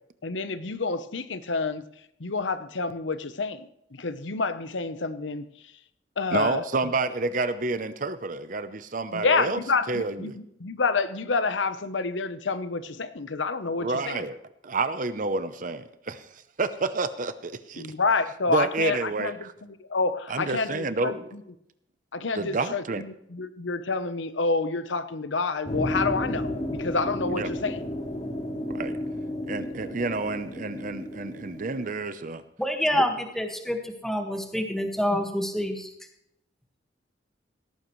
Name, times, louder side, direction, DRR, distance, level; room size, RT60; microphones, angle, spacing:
voice 1, 0.2-1.8 2.2-5.5 6.2-6.6 9.1-14.2 17.8-21.4 22.1-27.8, left 4 dB, 90° left, 12 dB, 0.9 m, -28 dB
voice 2, 6.3-9.6 9.9-10.4 13.8-14.4 14.6-16.3 16.6-17.9 18.5-19.5 20.3-21.3 22.3-23.0 27.3-27.5 28.7-29.0 29.5-32.4 32.9-33.1, right 3 dB, 45° right, 12 dB, 0.7 m, -29 dB
sound 1, 25.6-31.9, left 1 dB, 40° left, 3.0 m, -33 dB
voice 3, 32.6-35.9, equal, ahead, 3 dB, 1.7 m, -27 dB
17.5 x 14.5 x 3.2 m, 0.77 s
head